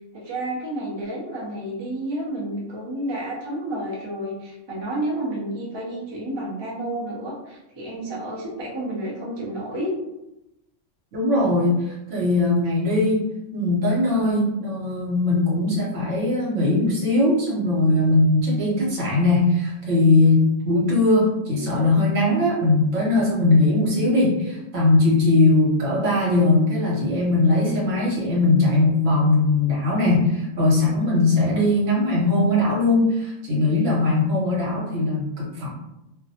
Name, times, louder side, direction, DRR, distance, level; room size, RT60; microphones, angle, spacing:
voice 1, 0.1-9.9, right 1 dB, 35° right, -5 dB, 0.5 m, -30 dB
voice 2, 11.1-13.2 13.5-35.7, left 2 dB, 75° right, -5 dB, 1.2 m, -20 dB
2.5 x 2.1 x 2.7 m, 0.91 s
omnidirectional pair, 1.3 m